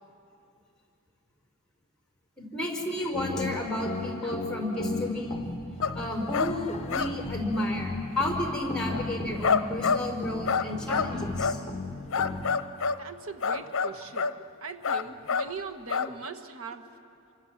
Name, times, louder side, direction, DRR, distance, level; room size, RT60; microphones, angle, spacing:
voice 1, 2.4-5.4 5.9-11.6, left 1 dB, 5° left, 1 dB, 4.8 m, -31 dB
sound 1, 3.1-12.6, left 2 dB, 30° left, 1.4 m, -37 dB
sound 2, 5.8-5.9 6.3-6.6 6.9-7.3 7.5-7.8 8.5-8.6 8.9-10.0 10.5-11.1 11.4-11.6 12.1-13.0 13.4-14.4 14.8-15.5 15.9-16.1, left 5 dB, 60° left, 0.8 m, -27 dB
voice 2, 12.9-14.3 14.6-16.9, right 4 dB, 70° right, 5 dB, 1.6 m, -40 dB
27.5 x 25.0 x 7.5 m, 2.5 s
head